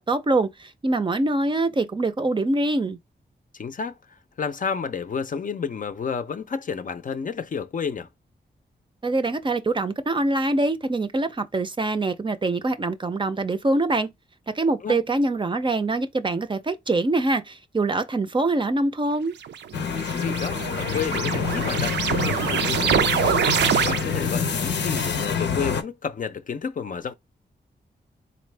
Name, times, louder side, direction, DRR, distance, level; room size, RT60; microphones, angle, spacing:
voice 1, 0.0-3.0 9.0-14.1 14.5-19.3, right 2 dB, 30° right, 0.5 m, -24 dB
voice 2, 3.5-8.1 14.8-15.0 20.1-23.4 23.8-27.1, left 6 dB, 50° left, 0.5 m, -31 dB
sound 1, 19.4-24.4, right 8 dB, 85° right, 0.4 m, -25 dB
sound 2, 19.7-25.8, left 6 dB, 90° left, 0.7 m, -27 dB
4.1 x 2.6 x 3.3 m
cardioid pair, 85°, 18 cm